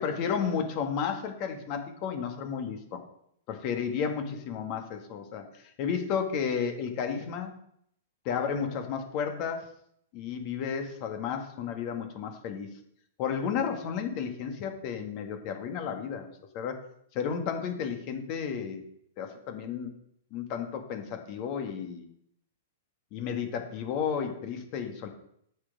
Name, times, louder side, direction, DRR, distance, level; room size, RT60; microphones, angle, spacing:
voice 1, 0.0-3.0 3.5-7.5 8.2-9.7 10.1-12.7 13.2-16.8 17.1-18.9 19.2-19.9 20.3-22.0 23.1-25.1, left 7 dB, 40° left, 5 dB, 1.8 m, -32 dB
8.5 x 6.1 x 5.1 m, 0.70 s
figure-of-eight pair, 105°, 0 cm